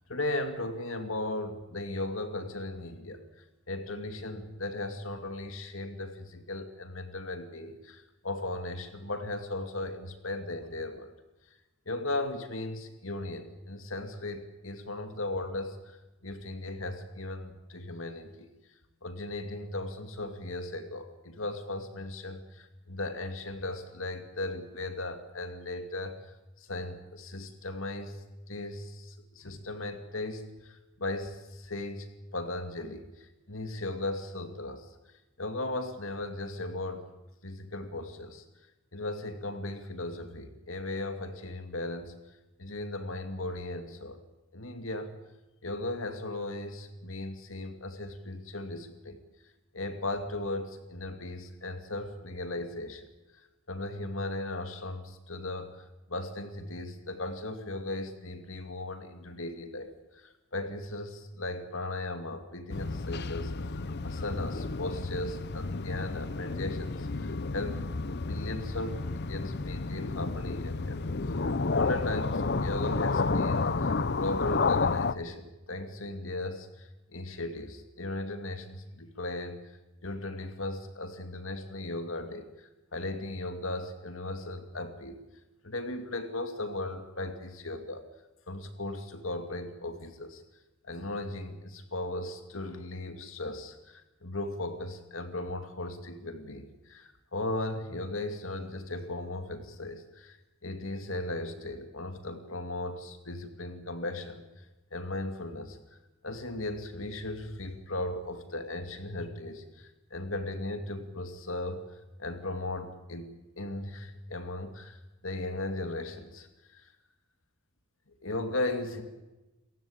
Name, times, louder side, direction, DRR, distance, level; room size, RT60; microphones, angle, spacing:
voice 1, 0.1-11.1 11.9-18.5 19.0-34.9 35.4-37.0 37.4-38.4 38.9-42.1 42.6-44.2 44.5-45.1 45.6-49.2 49.7-53.1 53.7-67.9 68.3-71.1 71.6-79.6 80.0-85.2 85.6-88.0 88.5-90.4 90.8-100.4 100.6-104.6 104.9-106.0 106.2-111.8 112.2-116.9 118.2-119.0, left 2 dB, 80° left, 7 dB, 2.5 m, -37 dB
sound 1, 62.7-75.1, left 3 dB, 55° left, 0.8 m, -31 dB
29.0 x 15.5 x 8.8 m, 1.0 s
head